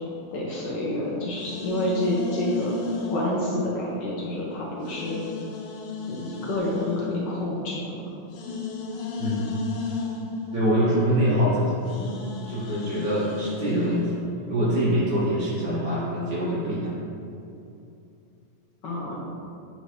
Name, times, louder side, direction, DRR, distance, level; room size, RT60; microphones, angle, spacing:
voice 1, 0.3-5.2 6.1-8.0 18.8-19.2, left 1 dB, 65° left, -5 dB, 1.4 m, -29 dB
sound 1, 0.6-4.4 4.8-14.2, left 4 dB, 85° left, 1.6 m, -33 dB
voice 2, 10.5-11.7 12.5-14.1 14.5-16.9, equal, 55° right, -9 dB, 2.2 m, -24 dB
8.0 x 3.9 x 3.2 m, 2.6 s
omnidirectional pair, 2.4 m